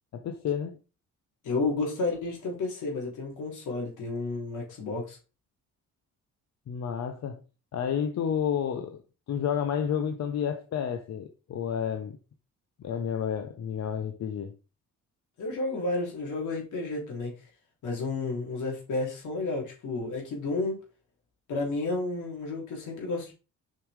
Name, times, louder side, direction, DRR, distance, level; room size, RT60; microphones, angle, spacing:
voice 1, 0.1-0.8 6.7-7.4 7.7-9.0 9.3-12.2 12.8-14.5, left 8 dB, 60° left, 1.0 m, -30 dB
voice 2, 1.4-5.2 15.4-17.3 17.8-20.8 21.5-23.3, left 3 dB, 80° left, 3.1 m, -31 dB
7.2 x 5.5 x 3.5 m
cardioid pair, 90°, 30 cm